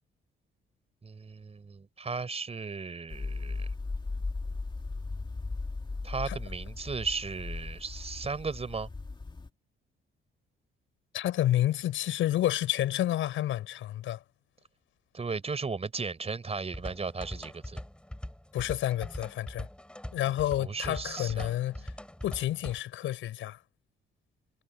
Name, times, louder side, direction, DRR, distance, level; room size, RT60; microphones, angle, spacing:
voice 1, 1.0-3.7 6.0-8.9 15.1-17.8 20.6-21.5, right 4 dB, 30° right, 4.9 m, -36 dB
sound 1, 3.1-9.5, left 3 dB, 20° left, 2.1 m, -37 dB
voice 2, 11.1-14.2 18.5-19.7 20.1-21.9 22.2-23.6, left 13 dB, 85° left, 6.6 m, -30 dB
sound 2, 16.7-22.8, left 1 dB, 5° left, 5.6 m, -42 dB
cardioid pair, 90°, 20 cm